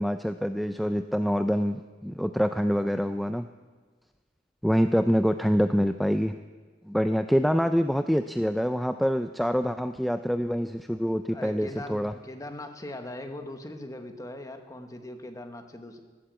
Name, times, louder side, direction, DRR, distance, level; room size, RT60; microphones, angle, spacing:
voice 1, 0.0-3.5 4.6-6.3 6.9-12.1, equal, ahead, 9 dB, 0.3 m, -25 dB
voice 2, 11.3-16.0, left 1 dB, 20° left, 6 dB, 1.1 m, -40 dB
14.0 x 8.5 x 8.1 m, 1.4 s
head